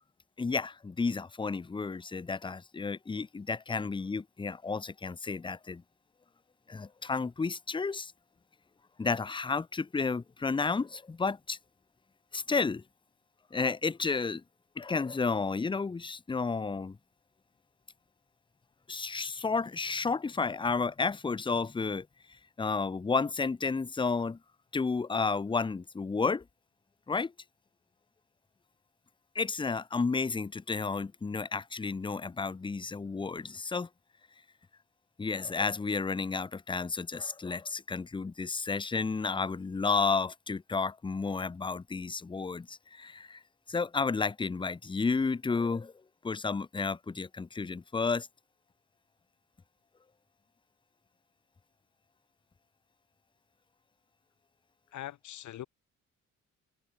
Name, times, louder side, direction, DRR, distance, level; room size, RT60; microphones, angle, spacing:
voice 1, 0.4-5.8 6.7-8.1 9.0-11.6 12.3-12.8 13.5-14.4 14.8-17.0 18.9-22.1 22.6-24.4 24.7-26.4 27.1-27.3 29.3-33.9 35.2-43.4 43.7-45.9 46.2-48.3, left 4 dB, 15° left, 0.6 m, -32 dB
voice 2, 54.9-55.7, left 12 dB, 75° left, 2.0 m, -42 dB
cardioid pair, 90°, 30 cm